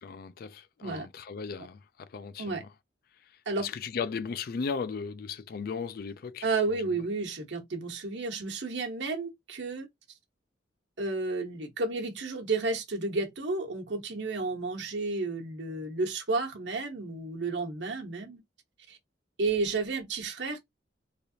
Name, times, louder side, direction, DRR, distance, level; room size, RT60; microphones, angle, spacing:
voice 1, 0.0-2.7 3.6-6.5 6.8-7.0, left 5 dB, 55° left, 0.4 m, -36 dB
voice 2, 6.4-9.9 11.0-18.4 18.9-19.0 19.4-20.7, right 3 dB, 85° right, 1.0 m, -32 dB
3.3 x 2.5 x 2.7 m
head